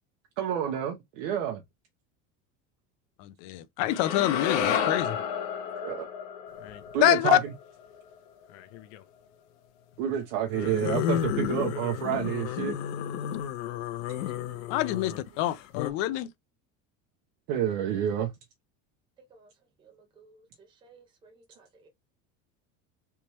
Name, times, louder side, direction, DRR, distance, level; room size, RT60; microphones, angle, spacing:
voice 1, 0.4-1.6 5.8-6.1 6.9-7.4 10.0-12.8 17.5-18.3, right 9 dB, 75° right, 0.9 m, -29 dB
voice 2, 3.2-5.2 7.0-7.4 14.7-16.3, left 15 dB, 50° left, 0.5 m, -26 dB
sound 1, 3.9-8.1, left 8 dB, 65° left, 1.0 m, -31 dB
sound 2, 6.6-6.9 8.5-9.0 10.5-15.9, left 11 dB, 90° left, 0.7 m, -33 dB
voice 3, 14.1-14.7 15.0-15.6 19.3-19.5 19.8-21.9, right 4 dB, 15° right, 0.5 m, -57 dB
3.4 x 2.9 x 3.0 m
cardioid pair, 175°, 37 cm